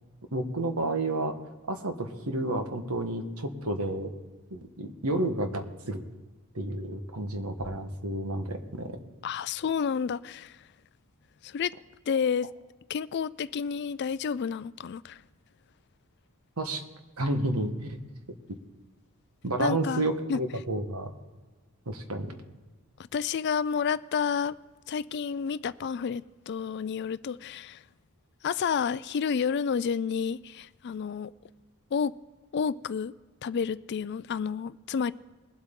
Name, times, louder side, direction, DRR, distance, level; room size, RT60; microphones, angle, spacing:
voice 1, 0.3-1.4 1.7-4.1 4.5-6.0 6.5-9.0 16.6-16.8 17.2-18.0 19.4-21.1 21.9-22.3, right 1 dB, 75° right, 1.4 m, -30 dB
voice 2, 9.2-10.6 11.4-11.7 12.1-12.5 12.9-15.2 19.6-20.4 23.1-24.6 24.9-27.8 28.4-31.3 31.9-32.1 32.5-33.1 33.4-35.1, left 6 dB, 50° left, 0.3 m, -30 dB
21.5 x 8.0 x 3.8 m
head